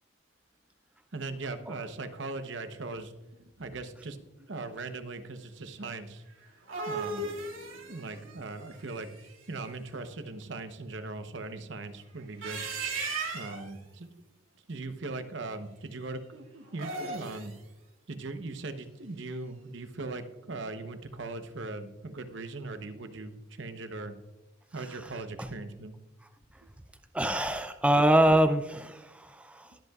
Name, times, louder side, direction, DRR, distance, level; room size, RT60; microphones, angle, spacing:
voice 1, 1.1-3.1 3.4-6.2 6.9-7.3 7.7-9.1 9.5-12.6 13.3-14.1 14.7-17.5 18.1-24.1 24.7-25.9 26.6-26.7, right 3 dB, 65° right, 9 dB, 0.9 m, -39 dB
sound 1, 6.4-9.5 12.2-13.7 16.7-17.6, right 3 dB, 85° right, 2.6 m, -37 dB
voice 2, 24.8-25.1 25.4-25.5 27.1-29.8, right 1 dB, 5° right, 8 dB, 0.4 m, -25 dB
21.0 x 8.1 x 2.4 m, 1.0 s
head